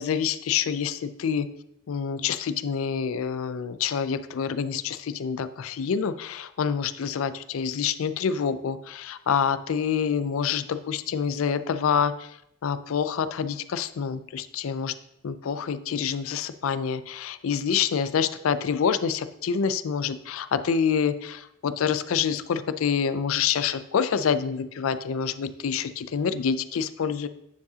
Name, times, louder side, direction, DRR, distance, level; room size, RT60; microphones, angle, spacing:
voice 1, 0.0-1.5 1.9-12.4 12.6-14.9 15.2-27.3, left 7 dB, 90° left, 13 dB, 0.4 m, -27 dB
9.3 x 4.7 x 2.8 m, 0.79 s
head